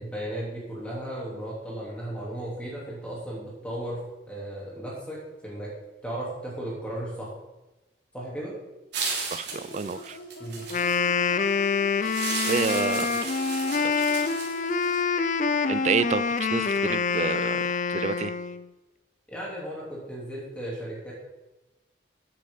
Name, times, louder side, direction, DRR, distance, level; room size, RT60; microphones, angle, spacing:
voice 1, 0.0-4.0 4.3-5.7 6.0-7.3 8.1-8.5 10.4-10.7 19.3-21.1, right 1 dB, 5° left, -5 dB, 3.3 m, -35 dB
sound 1, 8.9-11.1 12.0-15.0, right 4 dB, 75° right, 2.7 m, -34 dB
voice 2, 9.3-10.2 12.3-13.2 13.8-14.1 14.6-14.7 15.7-17.6 17.9-18.4, right 5 dB, 40° right, 15 dB, 0.3 m, -29 dB
sound 2, 9.5-15.4, equal, 75° left, 0.9 m, -43 dB
Wind instrument woodwind instrument, 10.6-18.7, left 5 dB, 45° left, 0.4 m, -26 dB
11.5 x 8.6 x 4.0 m, 1.0 s
head